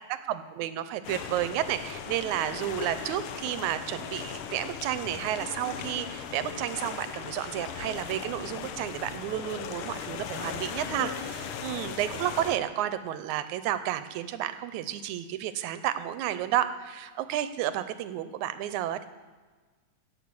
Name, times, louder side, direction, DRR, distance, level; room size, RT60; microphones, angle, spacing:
voice 1, 0.1-19.1, right 12 dB, 90° right, 12 dB, 2.1 m, -31 dB
sound 1, 1.0-12.6, left 8 dB, 75° left, 1.2 m, -38 dB
16.5 x 6.9 x 7.6 m, 1.4 s
omnidirectional pair, 3.4 m